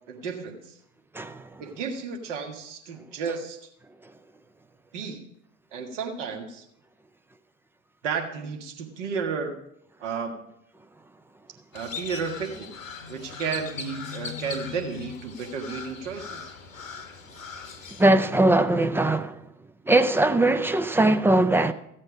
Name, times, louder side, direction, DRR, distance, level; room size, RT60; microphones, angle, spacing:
voice 1, 0.1-0.8 1.6-3.6 4.9-5.2 5.7-6.6 8.0-9.5 10.0-10.5 11.7-12.8 13.1-16.5, right 5 dB, 65° right, 1.7 m, -32 dB
voice 2, 1.1-1.5 18.0-19.4 19.9-21.7, right 2 dB, 5° right, 0.3 m, -20 dB
Crow, 11.7-18.1, left 6 dB, 80° left, 1.1 m, -39 dB
15.0 x 7.6 x 4.8 m
figure-of-eight pair, 65°, 39 cm